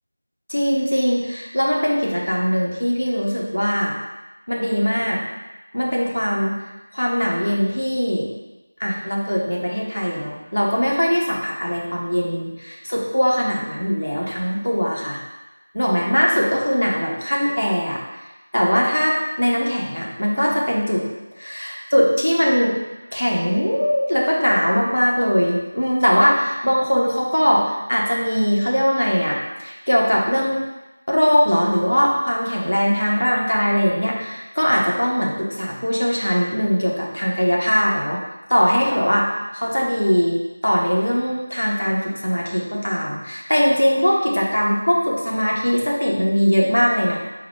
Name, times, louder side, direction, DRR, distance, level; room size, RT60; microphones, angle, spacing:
voice 1, 0.5-4.0 4.5-5.2 5.7-6.6 6.9-8.3 8.8-15.2 15.7-18.0 18.5-21.0 21.4-22.8 23.1-30.6 31.1-38.2 38.5-47.2, equal, 80° left, -2 dB, 0.9 m, -20 dB
3.9 x 2.1 x 4.5 m, 1.0 s
figure-of-eight pair, 170°, 0 cm